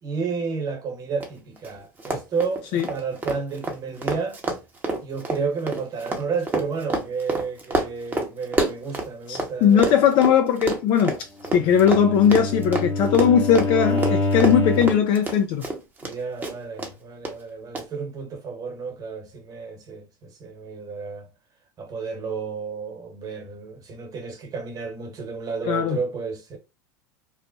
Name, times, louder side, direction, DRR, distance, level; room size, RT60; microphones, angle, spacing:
voice 1, 0.0-4.4 5.0-10.1 16.0-21.3 21.8-26.6, right 5 dB, 35° right, 1.2 m, -31 dB
Run, 1.2-1.3 1.6-1.7 2.0-9.5 9.8-16.1 16.4-16.9 17.2-17.3 17.7-17.8, right 2 dB, 15° right, 0.8 m, -28 dB
voice 2, 9.3-11.2 11.5-15.7 25.7-26.0, left 8 dB, 50° left, 0.5 m, -19 dB
Bowed string instrument, 11.5-15.1, left 2 dB, 15° left, 0.7 m, -26 dB
3.1 x 2.1 x 2.6 m
hypercardioid pair, 90°, 11 cm